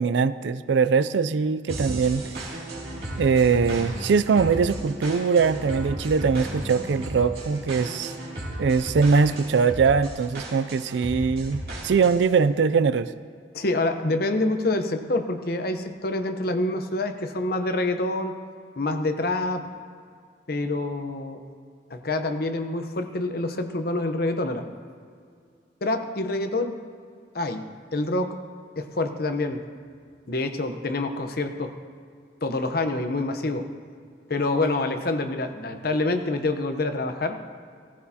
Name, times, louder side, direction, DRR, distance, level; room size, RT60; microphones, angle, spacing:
voice 1, 0.0-2.3 3.2-8.1 8.6-13.1, right 5 dB, 85° right, 15 dB, 0.4 m, -22 dB
sound 1, 1.7-12.3, right 1 dB, 60° right, 2.8 m, -35 dB
voice 2, 13.5-18.4 18.8-19.7 20.5-21.4 21.9-24.6 25.8-26.8 27.3-28.4 28.8-29.6 30.3-31.7 32.4-33.7 34.3-37.4, left 2 dB, 60° left, 7 dB, 0.9 m, -26 dB
16.5 x 15.0 x 2.9 m, 2.2 s
head